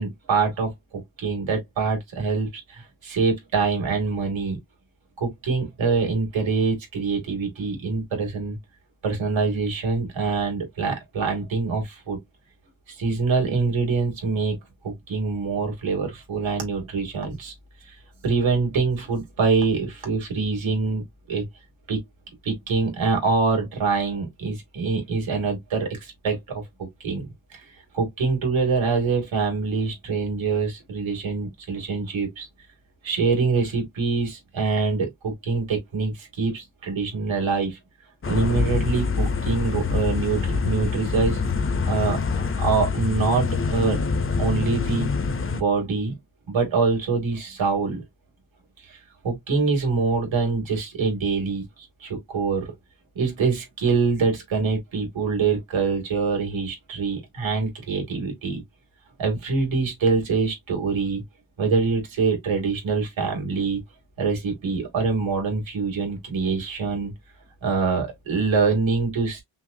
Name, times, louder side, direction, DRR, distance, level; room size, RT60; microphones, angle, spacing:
voice 1, 0.0-4.6 5.2-8.6 9.0-12.2 12.9-14.6 14.8-17.5 17.9-18.0 18.2-21.4 21.9-22.0 22.4-27.6 27.9-32.5 33.0-37.8 38.3-41.4 41.8-42.2 42.6-44.0 44.4-45.1 45.5-46.1 46.5-48.0 48.9-49.0 49.2-51.7 52.0-52.7 53.2-58.6 59.2-61.2 61.6-63.8 64.2-67.1 67.6-69.4, right 4 dB, 75° right, 2.4 m, -25 dB
sound 1, 38.2-45.6, left 4 dB, 30° left, 0.5 m, -25 dB
5.6 x 2.4 x 2.6 m
wide cardioid pair, 150°, 47 cm